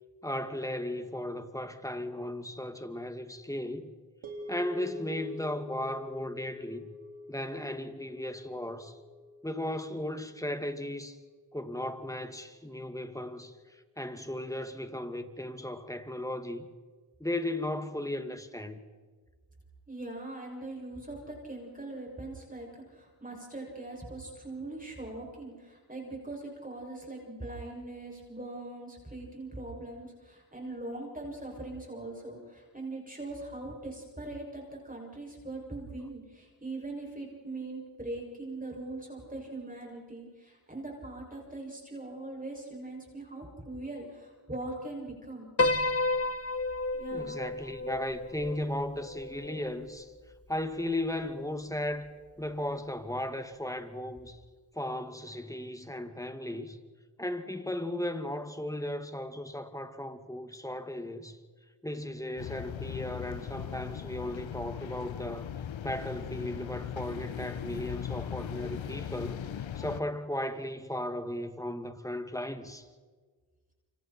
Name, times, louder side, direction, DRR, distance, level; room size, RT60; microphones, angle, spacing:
voice 1, 0.2-3.9 4.5-6.9 7.3-9.0 9.4-11.2 11.5-16.7 17.2-18.8 47.1-50.1 50.5-52.1 52.4-54.4 54.7-56.8 57.2-61.4 61.8-65.5 65.8-69.4 69.8-72.9, left 1 dB, 5° left, 2.3 m, -36 dB
sound 1, 4.2-12.5, left 1 dB, 80° right, 4.9 m, -47 dB
voice 2, 19.9-45.5 47.0-47.3, right 2 dB, 15° right, 6.9 m, -41 dB
Piano, 45.6-50.0, left 2 dB, 30° left, 1.3 m, -31 dB
sound 2, 62.4-70.0, left 9 dB, 70° left, 1.1 m, -39 dB
29.0 x 25.5 x 4.5 m
cardioid pair, 50°, 47 cm